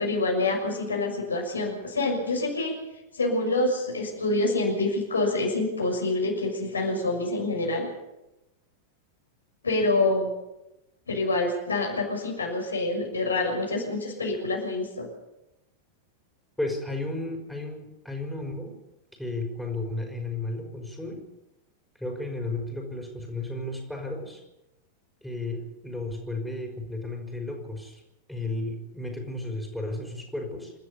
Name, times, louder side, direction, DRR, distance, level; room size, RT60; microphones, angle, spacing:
voice 1, 0.0-2.7 3.1-7.9 9.6-10.3 11.1-15.1, left 2 dB, 75° left, 1 dB, 6.6 m, -26 dB
voice 2, 16.6-18.7 19.2-21.2 22.0-24.4 25.2-28.0 28.3-30.7, left 2 dB, ahead, 1 dB, 5.5 m, -33 dB
28.5 x 13.0 x 7.1 m, 0.95 s
figure-of-eight pair, 90°, 0 cm